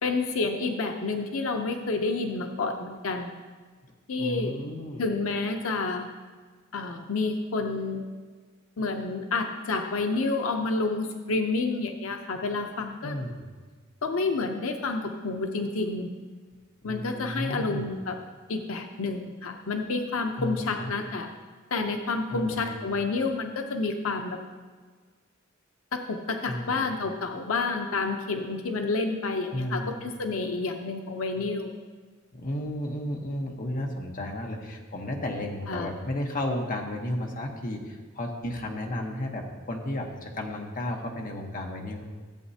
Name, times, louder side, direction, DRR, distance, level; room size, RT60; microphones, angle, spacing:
voice 1, 0.0-3.3 4.1-4.5 5.0-6.1 6.7-8.1 8.8-13.1 14.0-16.1 16.8-18.2 18.5-21.3 21.7-24.4 25.9-31.7 35.7-35.9, left 3 dB, 85° left, 4 dB, 0.7 m, -29 dB
voice 2, 4.2-5.0 13.0-13.4 16.8-17.9 20.3-20.9 22.3-22.8 26.5-26.8 29.5-30.0 32.3-42.0, left 1 dB, 40° left, 1 dB, 1.1 m, -33 dB
14.5 x 8.0 x 2.8 m, 1.5 s
head